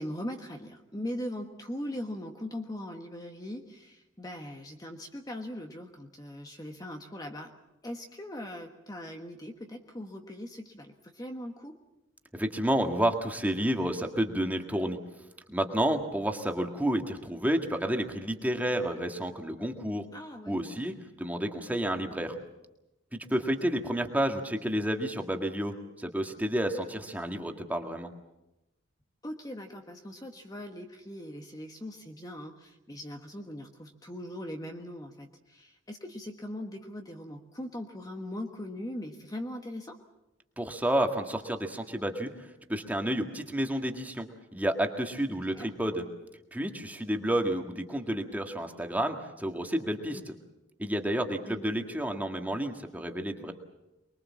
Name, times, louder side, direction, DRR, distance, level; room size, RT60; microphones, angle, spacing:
voice 1, 0.0-7.5 7.8-11.8 20.1-20.6 29.2-40.0 45.5-45.7 51.5-51.6, left 1 dB, 20° left, 3 dB, 1.3 m, -40 dB
voice 2, 12.3-15.0 15.5-20.0 20.5-22.4 23.1-28.1 40.6-44.3 44.5-46.0 46.5-50.2 50.8-53.5, right 1 dB, 10° right, 4 dB, 1.9 m, -30 dB
24.0 x 22.0 x 7.4 m, 0.94 s
head